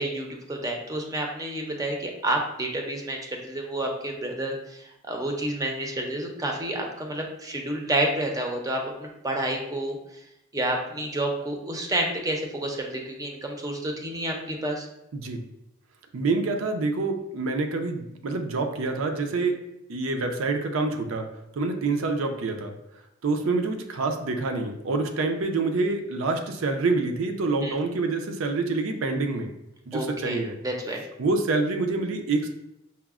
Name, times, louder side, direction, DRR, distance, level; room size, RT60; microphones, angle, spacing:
voice 1, 0.0-10.0 10.5-14.9 27.6-27.7 29.9-31.0, right 1 dB, 15° right, 1 dB, 0.4 m, -29 dB
voice 2, 16.1-19.6 19.9-21.3 21.6-22.7 23.2-29.5 29.9-30.6 31.2-32.5, right 3 dB, 85° right, 5 dB, 0.5 m, -26 dB
5.5 x 2.0 x 2.4 m, 0.84 s
head